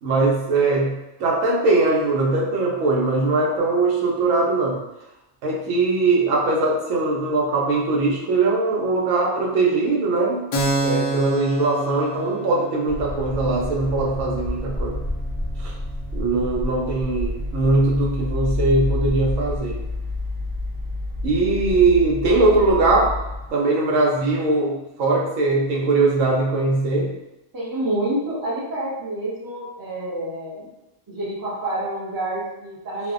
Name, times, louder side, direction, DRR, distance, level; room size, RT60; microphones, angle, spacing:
voice 1, 0.0-4.8 5.4-10.5 10.8-15.0 15.6-15.7 16.1-19.8 21.2-23.2 23.5-27.1, right 3 dB, 85° right, -2 dB, 1.0 m, -21 dB
Keyboard (musical), 10.5-17.8, right 2 dB, 70° left, 0.4 m, -30 dB
sound 1, 12.9-23.5, left 2 dB, 65° right, 0.8 m, -29 dB
voice 2, 27.5-30.7 31.1-33.1, right 1 dB, 35° right, -5 dB, 0.3 m, -28 dB
2.5 x 2.0 x 2.4 m, 0.95 s
omnidirectional pair, 1.3 m